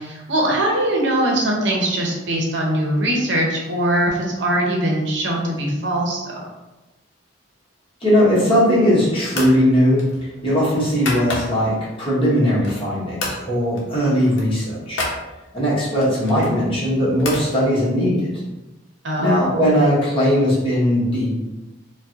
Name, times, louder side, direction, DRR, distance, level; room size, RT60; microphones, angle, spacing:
voice 1, 0.0-6.4 19.0-19.4, right 1 dB, 65° right, -1 dB, 0.8 m, -21 dB
voice 2, 8.0-15.0 15.5-18.3 19.2-21.4, equal, 30° left, -8 dB, 1.3 m, -19 dB
sound 1, 8.5-8.8 9.3-9.6 10.0-11.8 12.2-12.9 13.2-13.4 13.7-13.9 14.1-15.2 16.0-17.5, left 2 dB, 70° left, 0.8 m, -30 dB
4.5 x 2.3 x 2.8 m, 1.0 s
head